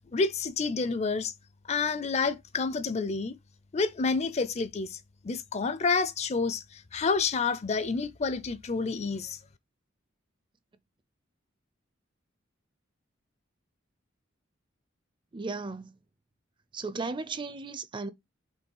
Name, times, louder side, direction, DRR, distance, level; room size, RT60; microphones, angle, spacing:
voice 1, 0.1-1.3 1.7-3.3 3.7-5.0 5.2-9.4, left 4 dB, 35° left, 0.4 m, -29 dB
voice 2, 15.3-15.9 16.7-18.1, right 3 dB, 25° right, 0.4 m, -35 dB
5.3 x 3.6 x 5.4 m
head